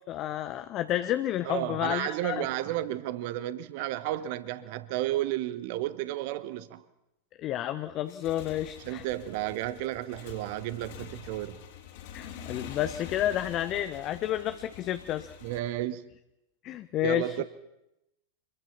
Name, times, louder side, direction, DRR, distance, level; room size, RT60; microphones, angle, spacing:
voice 1, 0.1-2.5 7.4-9.0 12.1-15.3 16.6-17.4, left 12 dB, 35° left, 0.9 m, -30 dB
voice 2, 1.4-6.8 8.8-11.6 15.4-16.0 17.0-17.4, right 14 dB, 50° right, 1.1 m, -32 dB
Motorcycle / Engine, 8.0-15.6, left 7 dB, 50° left, 3.7 m, -46 dB
26.0 x 22.0 x 5.9 m
figure-of-eight pair, 90°, 0 cm